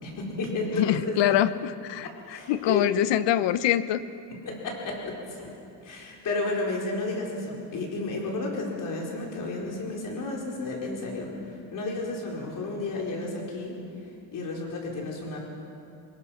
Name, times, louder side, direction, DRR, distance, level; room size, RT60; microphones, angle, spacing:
voice 1, 0.0-1.0 2.0-2.9 4.4-5.5 5.8-11.3 11.7-13.7 14.3-15.4, left 3 dB, 45° left, -1 dB, 4.7 m, -32 dB
voice 2, 0.7-4.0, left 12 dB, 70° left, 14 dB, 0.9 m, -24 dB
25.0 x 21.5 x 5.9 m, 2.6 s
cardioid pair, 160°, 44 cm